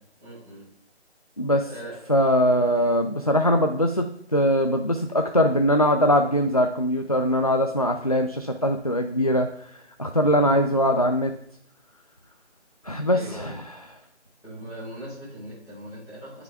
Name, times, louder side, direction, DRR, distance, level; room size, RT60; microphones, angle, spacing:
voice 1, 0.2-0.7 1.5-2.0 10.4-10.6 13.0-13.6 14.4-16.4, equal, 5° right, -11 dB, 4.4 m, -40 dB
voice 2, 2.1-4.1 4.3-9.7 10.0-11.3 12.8-13.5, equal, 35° left, 5 dB, 0.4 m, -21 dB
17.5 x 5.9 x 3.4 m, 0.71 s
figure-of-eight pair, 170°, 35 cm